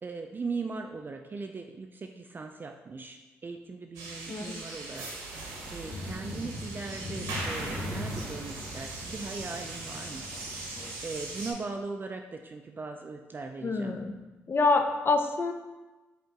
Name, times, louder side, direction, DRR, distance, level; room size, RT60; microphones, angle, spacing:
voice 1, 0.0-5.1 5.7-10.3 10.6-10.7 11.0-14.0, right 4 dB, 30° right, 4 dB, 0.3 m, -39 dB
sound 1, 3.9-11.5, right 2 dB, 80° right, 0.9 m, -39 dB
sound 2, 5.8-10.9, left 2 dB, 55° left, 1.1 m, -40 dB
voice 2, 13.6-14.2 14.5-15.5, left 3 dB, 40° left, 6 dB, 0.5 m, -26 dB
5.1 x 2.9 x 3.6 m, 1.1 s
hypercardioid pair, 45°, 6 cm